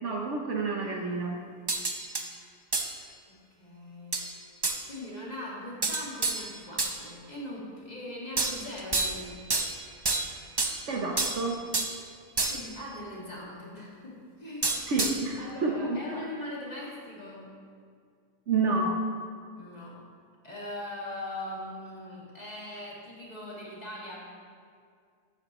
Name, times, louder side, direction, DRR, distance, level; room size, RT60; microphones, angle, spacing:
voice 1, 0.0-1.4 10.9-11.5 14.9-15.7 18.5-19.0, right 3 dB, 55° right, 0 dB, 1.1 m, -29 dB
sound 1, 1.7-2.3 2.7-2.9 4.1-4.3 4.6-4.8 5.8-7.0 8.4-9.2 9.5-10.8 11.2-12.0 12.4-12.8 14.6-15.3, right 3 dB, 35° right, 0.4 m, -29 dB
voice 2, 3.3-4.3 4.9-9.4 12.5-14.8 15.4-17.6 19.5-20.0 20.4-24.3, left 1 dB, 30° left, -5 dB, 2.1 m, -41 dB
14.0 x 8.8 x 3.0 m, 2.2 s
omnidirectional pair, 1.5 m